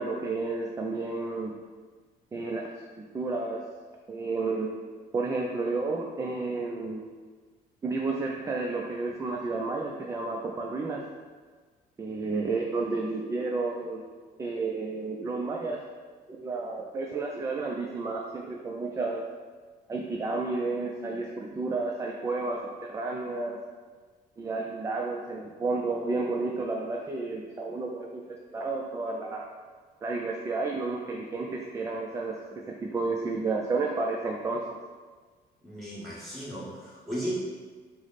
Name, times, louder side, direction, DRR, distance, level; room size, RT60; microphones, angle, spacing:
voice 1, 0.0-1.6 2.3-3.6 4.1-4.7 5.1-7.0 7.8-11.0 12.0-14.0 14.4-15.8 16.4-19.2 19.9-23.6 24.4-29.4 30.0-34.6, right 3 dB, 20° right, 0 dB, 0.3 m, -31 dB
voice 2, 35.6-37.4, right 1 dB, ahead, -8 dB, 1.5 m, -35 dB
4.6 x 2.0 x 4.0 m, 1.5 s
cardioid pair, 110°, 17 cm